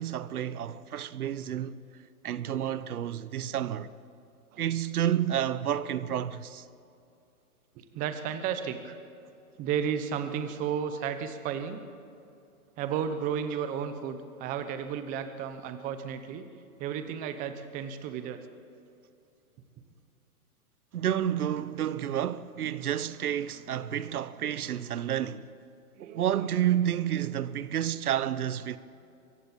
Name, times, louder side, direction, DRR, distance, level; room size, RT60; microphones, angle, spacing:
voice 1, 0.0-1.8 2.2-3.9 4.6-6.6 20.9-25.5 26.0-28.8, right 10 dB, 75° right, 1.1 m, -30 dB
voice 2, 7.8-9.0 9.6-11.8 12.8-16.5 16.8-18.5 26.0-26.2, right 8 dB, 20° right, 1.0 m, -33 dB
24.0 x 15.5 x 8.9 m
hypercardioid pair, 155°, 44 cm